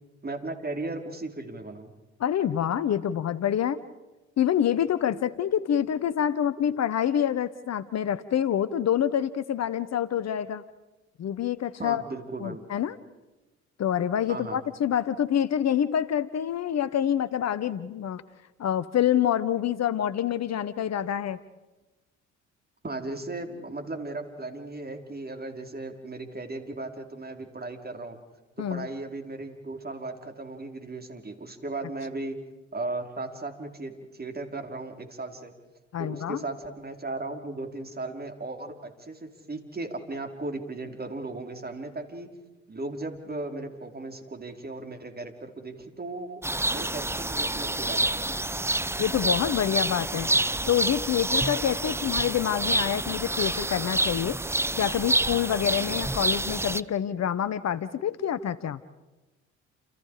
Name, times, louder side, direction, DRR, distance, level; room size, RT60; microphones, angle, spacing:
voice 1, 0.2-1.9 11.8-12.6 14.3-14.6 22.8-28.2 28.6-32.4 32.7-35.5 36.0-42.3 42.7-46.4 46.7-48.2, right 2 dB, 25° right, 4 dB, 5.3 m, -36 dB
voice 2, 2.2-3.8 4.4-10.6 11.2-12.0 12.4-13.0 13.8-18.2 18.6-21.4 28.6-28.9 35.9-36.4 49.0-50.3 50.7-54.4 54.8-58.8, left 9 dB, 50° left, 15 dB, 1.3 m, -27 dB
sound 1, 46.4-56.8, right 2 dB, 5° right, 0.9 m, -28 dB
30.0 x 29.0 x 5.2 m, 1.1 s
hypercardioid pair, 55°, 35 cm